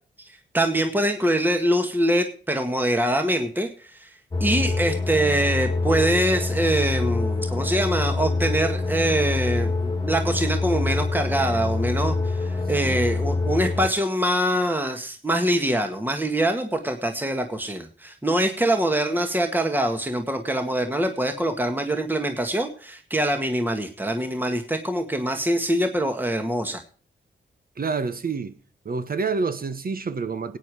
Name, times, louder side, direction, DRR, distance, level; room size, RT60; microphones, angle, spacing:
voice 1, 0.2-4.1 4.4-26.8, right 1 dB, 10° right, 1.8 m, -24 dB
sound 1, 4.3-13.9, left 3 dB, 25° left, 2.0 m, -25 dB
voice 2, 27.8-28.5 28.8-30.6, right 4 dB, 50° right, 1.4 m, -28 dB
16.5 x 9.4 x 4.9 m
cardioid pair, 70°, 19 cm